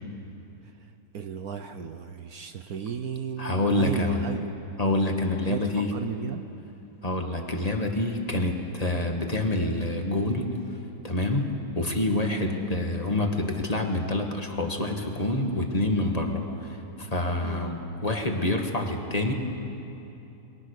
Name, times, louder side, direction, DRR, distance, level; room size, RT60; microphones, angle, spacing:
voice 1, 0.6-4.5 4.8-5.0 5.5-5.6 5.9-6.4 17.4-17.7, right 7 dB, 60° right, 8 dB, 1.3 m, -35 dB
voice 2, 3.4-4.2 4.8-5.9 7.0-10.5 11.0-19.3, left 2 dB, 20° left, 3 dB, 2.0 m, -27 dB
29.5 x 22.5 x 6.7 m, 2.8 s
omnidirectional pair, 1.9 m